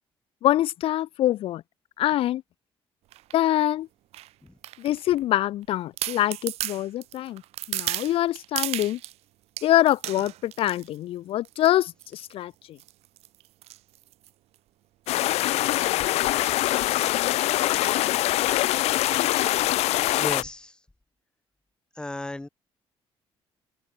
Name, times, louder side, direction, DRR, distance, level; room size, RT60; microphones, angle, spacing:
voice 1, 0.4-1.6 2.0-2.4 3.3-3.9 4.8-7.4 7.7-9.0 9.6-12.8, left 13 dB, 60° left, 0.7 m, -24 dB
sound 1, 3.1-3.4 4.1-5.2 5.6-5.7 6.0-9.2 9.6-11.0 11.5-11.7 12.0-12.3 12.8-14.6 15.1-15.3 15.5-15.6 15.8-16.1 16.5-16.7 17.0-17.1 18.1-18.4 18.9-19.0, right 15 dB, 75° right, 1.5 m, -35 dB
sound 2, 15.1-20.4, left 16 dB, 85° left, 1.9 m, -23 dB
voice 2, 20.2-20.8 22.0-22.5, left 2 dB, 10° left, 2.0 m, -35 dB
open air
cardioid pair, 160°, 11 cm